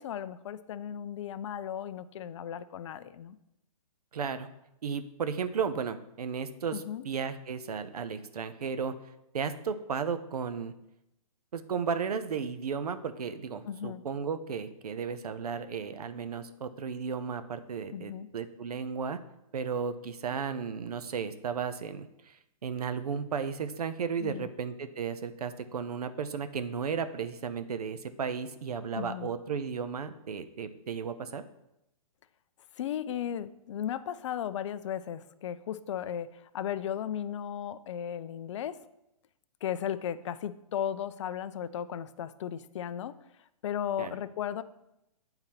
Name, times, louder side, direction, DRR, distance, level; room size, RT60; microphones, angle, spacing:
voice 1, 0.0-3.4 6.7-7.0 13.7-14.0 17.9-18.3 24.2-24.5 29.0-29.3 32.8-38.8 39.6-43.1 43.6-44.6, left 9 dB, 50° left, 14 dB, 0.4 m, -35 dB
voice 2, 4.1-4.5 4.8-8.9 9.3-10.7 11.5-19.2 19.5-31.4 44.0-44.2, right 6 dB, 80° right, 11 dB, 0.7 m, -34 dB
8.9 x 3.9 x 4.3 m, 0.85 s
hypercardioid pair, 145°, 20 cm